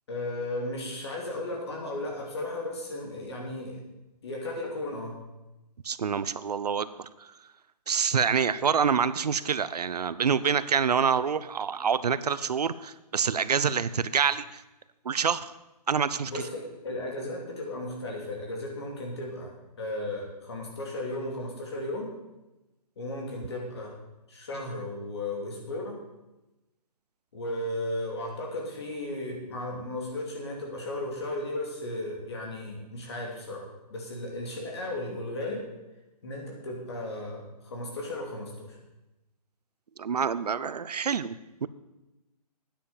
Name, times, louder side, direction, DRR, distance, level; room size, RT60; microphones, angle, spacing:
voice 1, 0.1-3.8 4.2-5.2 16.3-22.1 23.0-23.9 24.3-26.0 27.3-33.6 33.9-35.6 36.2-38.8, left 1 dB, 40° left, 0 dB, 2.8 m, -35 dB
voice 2, 5.8-7.3 7.9-14.6 15.0-15.5 15.9-16.4 40.0-41.7, right 6 dB, 70° right, 16 dB, 0.7 m, -27 dB
9.4 x 8.7 x 7.2 m, 1.0 s
hypercardioid pair, 175°, 21 cm